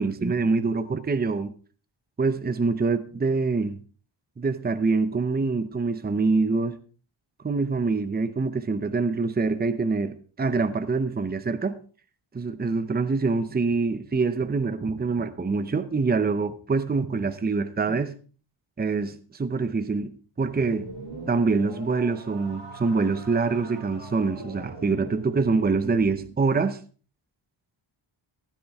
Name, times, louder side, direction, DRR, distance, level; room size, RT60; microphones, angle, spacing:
voice 1, 0.0-1.5 2.2-3.8 4.4-6.8 7.4-11.8 12.3-18.1 18.8-20.9 21.3-26.8, right 4 dB, 20° right, 0.7 m, -25 dB
sound 1, 20.4-26.3, right 3 dB, 65° right, 6.5 m, -42 dB
15.0 x 12.0 x 3.5 m
wide cardioid pair, 165°, 49 cm